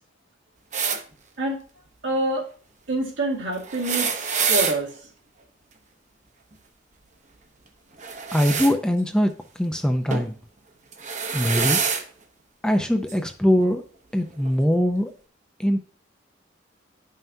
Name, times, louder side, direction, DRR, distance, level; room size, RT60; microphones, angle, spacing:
sound 1, 0.7-1.0 3.6-4.8 8.0-8.7 10.1-10.3 10.9-12.0 13.1-13.2 14.4-14.5, right 6 dB, 40° right, 0.8 m, -25 dB
voice 1, 2.0-2.5 2.9-4.9, right 1 dB, 75° right, -1 dB, 1.9 m, -26 dB
voice 2, 8.3-9.3 9.6-10.4 11.3-11.8 12.6-13.8 14.1-15.1 15.6-15.8, equal, 5° left, 5 dB, 0.5 m, -22 dB
10.5 x 5.6 x 2.7 m, 0.42 s
head